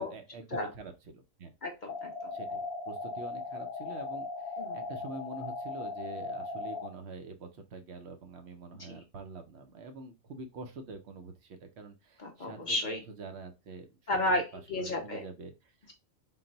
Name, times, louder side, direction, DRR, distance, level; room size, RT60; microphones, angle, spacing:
voice 1, 0.0-1.5 2.3-14.4 14.8-15.9, right 3 dB, 60° right, 6 dB, 0.8 m, -46 dB
voice 2, 1.6-2.3 4.6-4.8 8.7-9.0 12.2-13.0 14.1-15.2, left 1 dB, 50° left, 2 dB, 0.6 m, -33 dB
sound 1, 1.9-6.9, left 3 dB, 90° left, 1.0 m, -38 dB
3.9 x 2.1 x 3.8 m, 0.26 s
omnidirectional pair, 1.4 m